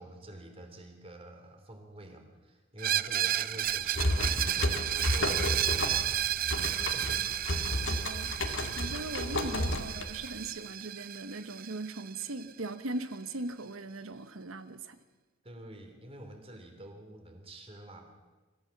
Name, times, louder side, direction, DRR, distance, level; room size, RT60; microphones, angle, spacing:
voice 1, 0.0-6.1 6.7-7.8 15.4-18.1, right 1 dB, 30° right, 5 dB, 3.3 m, -48 dB
Screech, 2.8-12.4, right 12 dB, 45° right, 0.5 m, -32 dB
sound 1, 3.6-10.5, left 1 dB, 65° left, 2.0 m, -32 dB
voice 2, 7.6-8.3 8.7-15.0, right 2 dB, 85° right, 10 dB, 1.1 m, -39 dB
26.0 x 15.0 x 7.3 m, 1.3 s
head